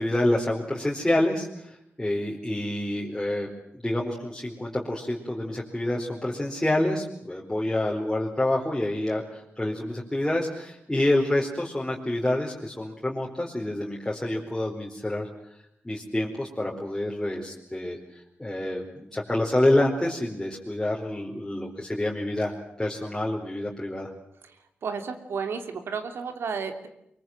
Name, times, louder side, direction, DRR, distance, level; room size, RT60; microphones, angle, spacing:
voice 1, 0.0-15.3 15.8-22.5 22.8-24.1, left 1 dB, 10° left, -3 dB, 4.4 m, -27 dB
voice 2, 24.8-26.9, right 5 dB, 85° right, 7 dB, 3.1 m, -32 dB
24.0 x 23.5 x 7.9 m, 0.77 s
cardioid pair, 80°, 4 cm